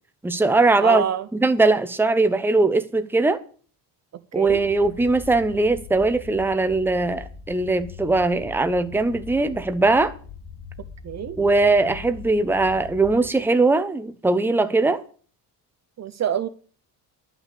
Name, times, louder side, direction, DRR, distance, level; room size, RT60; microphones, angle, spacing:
voice 1, 0.2-1.0 1.3-3.4 4.3-10.1 11.4-15.0, right 3 dB, 5° right, 0.9 m, -20 dB
voice 2, 0.8-1.3 4.3-4.6 11.0-11.4 16.0-16.5, right 9 dB, 35° right, 0.7 m, -26 dB
sound 1, 4.4-13.3, left 6 dB, 15° left, 5.7 m, -41 dB
11.5 x 6.1 x 8.4 m
cardioid pair, 125°, 46 cm